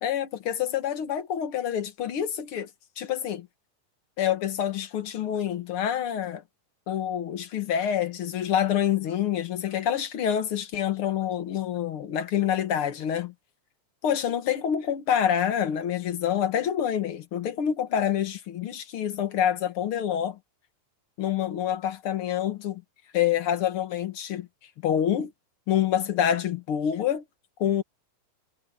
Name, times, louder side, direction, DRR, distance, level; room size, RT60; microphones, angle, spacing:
voice 1, 0.0-2.7 3.0-3.5 4.2-6.4 6.9-13.3 14.0-20.4 21.2-22.8 23.1-24.5 24.8-25.3 25.7-27.2 27.6-27.8, left 9 dB, 55° left, 1.8 m, -27 dB
omnidirectional pair, 3.6 m